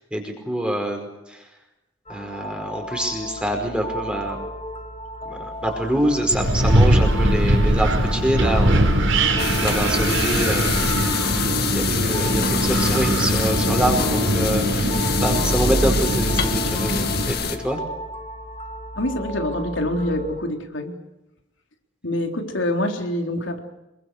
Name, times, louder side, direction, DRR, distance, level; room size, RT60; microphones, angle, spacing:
voice 1, 0.0-1.5 2.1-4.4 5.2-8.8 9.3-10.8 11.7-17.4 17.6-17.8, right 1 dB, 5° right, 2 dB, 5.1 m, -26 dB
sound 1, 2.1-20.4, equal, 30° left, 2.0 m, -35 dB
Wind, 6.3-17.3, right 1 dB, 80° right, 4.8 m, -21 dB
sound 2, 9.4-17.6, left 8 dB, 55° left, 2.2 m, -27 dB
voice 2, 19.0-20.9 22.0-23.6, left 1 dB, 75° left, 4 dB, 3.8 m, -25 dB
27.0 x 23.5 x 6.6 m, 0.95 s
head